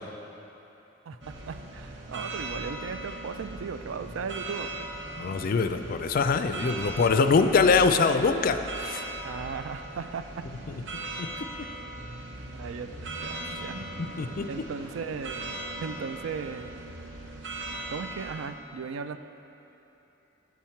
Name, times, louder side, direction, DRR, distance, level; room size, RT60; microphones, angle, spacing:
voice 1, 1.1-4.9 9.2-10.4 11.7-11.9 12.5-12.9 13.2-13.8 14.5-15.5 15.8-16.7 17.9-19.2, right 5 dB, 90° right, 10 dB, 0.4 m, -37 dB
sound 1, 1.2-18.5, right 2 dB, 65° right, 0.9 m, -39 dB
voice 2, 5.2-9.0 11.2-11.3 14.0-14.5, left 4 dB, 45° left, 9 dB, 0.3 m, -23 dB
8.2 x 7.2 x 4.4 m, 3.0 s
head